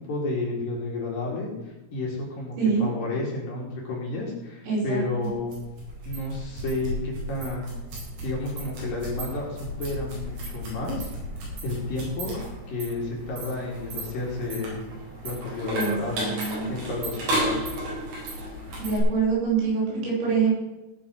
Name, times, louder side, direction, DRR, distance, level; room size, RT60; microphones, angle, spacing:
voice 1, 0.1-5.6 6.0-7.8 8.2-11.1 11.6-12.4 12.7-14.9 15.2-16.3 16.7-17.6, left 2 dB, 50° left, -2 dB, 3.5 m, -31 dB
voice 2, 4.6-5.3 15.7-16.7 18.8-20.5, right 5 dB, 80° right, -6 dB, 8.5 m, -25 dB
sound 1, 5.2-19.0, right 1 dB, 60° right, 6.7 m, -34 dB
18.0 x 6.3 x 6.3 m, 1.1 s
omnidirectional pair, 5.8 m